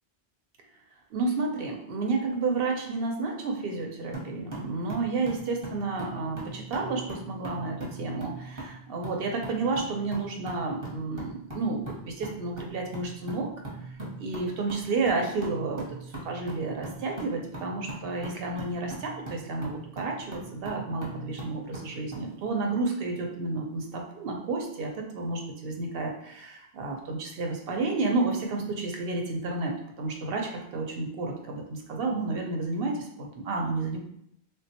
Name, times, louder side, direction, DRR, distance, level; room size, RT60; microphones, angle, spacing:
voice 1, 1.1-13.5 14.2-15.8 16.1-29.7 30.0-34.0, right 3 dB, 65° right, 1 dB, 0.8 m, -31 dB
sound 1, 4.1-22.3, right 2 dB, 20° right, 0.7 m, -41 dB
3.4 x 2.2 x 2.8 m, 0.73 s
omnidirectional pair, 1.1 m